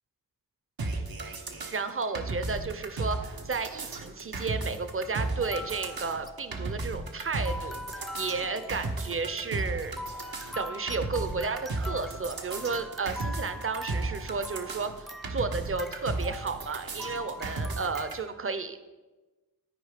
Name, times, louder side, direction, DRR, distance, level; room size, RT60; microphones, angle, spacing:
sound 1, 0.8-18.1, right 2 dB, 75° right, 1.2 m, -35 dB
voice 1, 1.7-10.0 10.6-18.8, right 4 dB, 35° right, 10 dB, 0.7 m, -33 dB
sound 2, 2.4-2.9 3.7-3.8 5.3-18.1, left 1 dB, ahead, 0.4 m, -43 dB
12.0 x 5.0 x 5.0 m, 1.2 s
wide cardioid pair, 100°, 36 cm